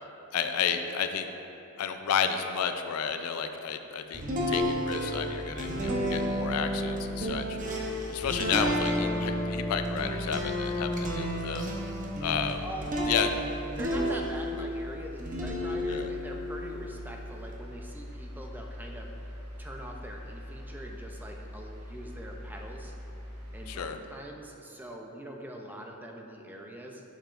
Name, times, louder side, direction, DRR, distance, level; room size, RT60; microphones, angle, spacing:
voice 1, 0.3-1.3 1.8-4.2 4.5-7.6 8.1-11.7 12.2-12.6 13.1-13.3 15.9-16.1 23.7-24.0, left 7 dB, 75° left, 8 dB, 0.4 m, -31 dB
sound 1, 4.1-14.7 15.2-17.5, equal, 35° right, 0.8 m, -32 dB
sound 2, 4.9-23.8, equal, 85° right, 1.0 m, -43 dB
voice 2, 8.6-9.1 12.6-13.2 13.8-22.9 23.5-27.0, right 1 dB, 10° right, 1 dB, 0.5 m, -43 dB
7.4 x 7.0 x 2.5 m, 2.9 s
head